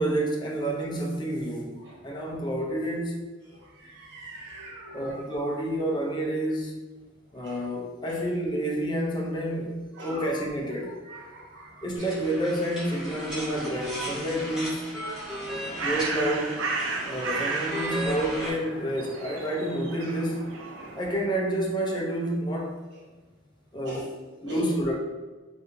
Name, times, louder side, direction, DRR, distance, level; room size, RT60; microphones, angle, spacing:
voice 1, 0.0-3.2 4.9-6.8 7.3-11.0 11.8-14.9 15.8-16.7 17.0-20.5 20.9-22.8 23.7-24.1 24.4-25.0, right 1 dB, 25° left, -1 dB, 0.6 m, -29 dB
voice 2, 4.0-5.1 7.4-7.6 8.1-8.2 10.0-10.3 11.1-11.7 15.3-15.4 20.8-20.9 23.8-24.0 24.5-24.6, right 1 dB, 65° right, -5 dB, 0.9 m, -41 dB
sound 1, 12.0-18.5, equal, 5° right, 1.1 m, -36 dB
Bird, 15.3-21.3, right 3 dB, 85° right, 0.4 m, -34 dB
4.0 x 2.6 x 2.6 m, 1.3 s
head